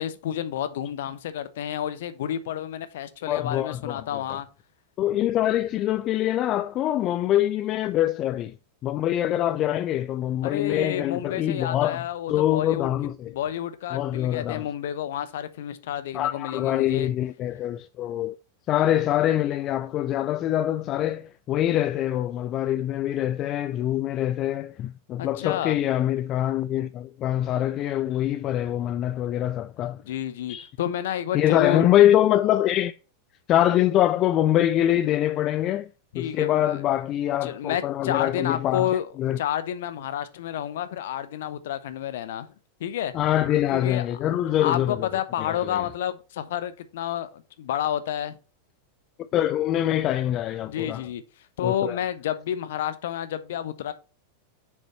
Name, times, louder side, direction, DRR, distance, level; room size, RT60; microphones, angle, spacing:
voice 1, 0.0-4.5 10.4-12.9 13.3-17.1 25.2-25.8 30.1-31.9 36.1-36.8 37.4-39.1 39.4-42.5 42.8-43.1 43.7-44.0 44.6-48.4 50.7-51.2 51.6-53.9, left 10 dB, 55° left, 0.8 m, -30 dB
voice 2, 3.3-4.4 5.0-8.5 8.8-12.0 12.3-13.3 13.9-14.6 16.1-18.3 18.7-30.0 30.5-30.7 31.3-32.9 33.5-35.9 36.1-38.9 39.2-39.4 43.1-45.1 45.4-45.8 49.3-51.0 51.6-52.0, left 12 dB, 35° left, 0.3 m, -24 dB
7.1 x 5.3 x 4.2 m
figure-of-eight pair, 90°, 0 cm